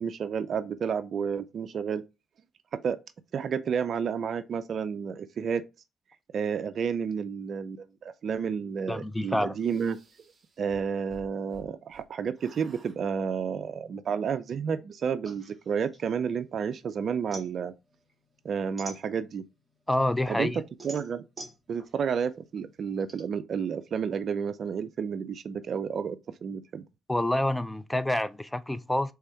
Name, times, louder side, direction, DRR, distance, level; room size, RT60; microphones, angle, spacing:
voice 1, 0.0-2.0 2.7-3.0 3.3-5.6 6.3-10.0 10.6-17.7 18.4-19.4 20.3-21.2 21.7-26.8, right 6 dB, 55° right, 0.4 m, -31 dB
voice 2, 8.9-9.5 19.9-20.6 27.1-29.1, left 1 dB, 5° left, 0.4 m, -27 dB
sound 1, 9.6-12.1 12.4-13.0, right 5 dB, 40° right, 1.0 m, -53 dB
sound 2, 15.2-16.7 17.0-19.6 20.0-23.2, right 2 dB, 20° right, 1.7 m, -46 dB
3.4 x 3.4 x 4.3 m
cardioid pair, 90°, 0 cm